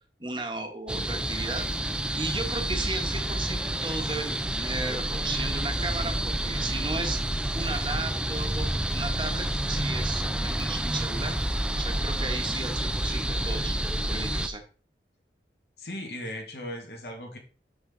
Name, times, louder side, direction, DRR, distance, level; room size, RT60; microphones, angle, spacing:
voice 1, 0.2-1.7 2.2-7.2 7.5-8.7 8.9-11.3 11.8-13.7 14.1-14.6, right 3 dB, 25° right, 5 dB, 1.1 m, -35 dB
sound 1, 0.9-14.5, right 1 dB, 5° right, 0.4 m, -29 dB
voice 2, 15.8-17.4, left 1 dB, 70° left, 2 dB, 2.1 m, -37 dB
7.2 x 6.0 x 3.8 m, 0.37 s
head